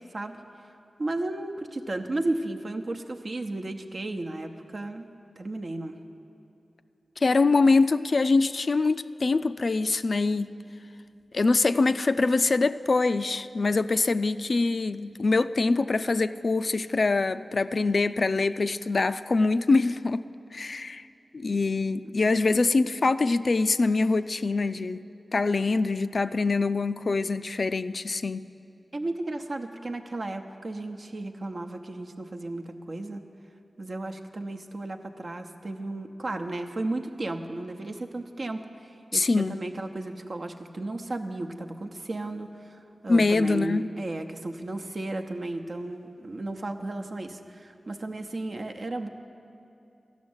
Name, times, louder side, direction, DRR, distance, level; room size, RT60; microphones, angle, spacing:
voice 1, 1.0-5.1 5.4-6.0 22.0-22.1 28.9-33.2 33.8-42.8 43.0-49.1, right 2 dB, 60° right, 4 dB, 0.8 m, -34 dB
voice 2, 7.2-10.5 11.3-20.3 20.5-21.0 21.3-25.0 25.3-28.4 39.1-39.6 43.1-43.9, left 3 dB, 60° left, 12 dB, 0.3 m, -24 dB
12.5 x 6.3 x 9.5 m, 2.8 s
cardioid pair, 40°, 0 cm